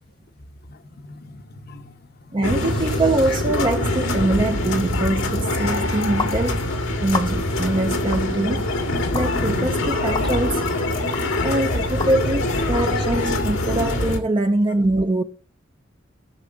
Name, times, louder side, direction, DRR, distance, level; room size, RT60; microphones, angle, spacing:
voice 1, 0.7-2.4 10.4-10.5 11.3-12.0, left 2 dB, 50° left, 0.9 m, -44 dB
voice 2, 2.3-6.6 7.0-8.7 9.1-10.7 11.4-15.2, right 2 dB, 25° right, 0.5 m, -23 dB
sound 1, 2.4-14.2, left 1 dB, 90° left, 2.0 m, -24 dB
sound 2, 6.2-6.3 7.1-7.6 8.1-8.3 9.1-9.3 10.1-10.3 11.1-11.2 12.0-12.1, left 4 dB, 25° left, 0.7 m, -28 dB
15.0 x 6.8 x 3.7 m
head